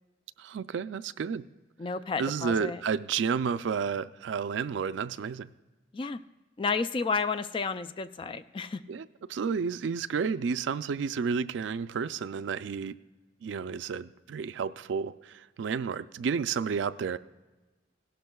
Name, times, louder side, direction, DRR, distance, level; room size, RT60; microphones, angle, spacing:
voice 1, 0.4-1.4 2.2-5.5 8.9-12.9 13.4-17.2, right 6 dB, 80° right, 15 dB, 0.4 m, -31 dB
voice 2, 1.8-2.8 5.9-6.2 6.6-8.8, left 4 dB, 30° left, 12 dB, 0.3 m, -31 dB
16.5 x 12.0 x 2.3 m, 1.2 s
head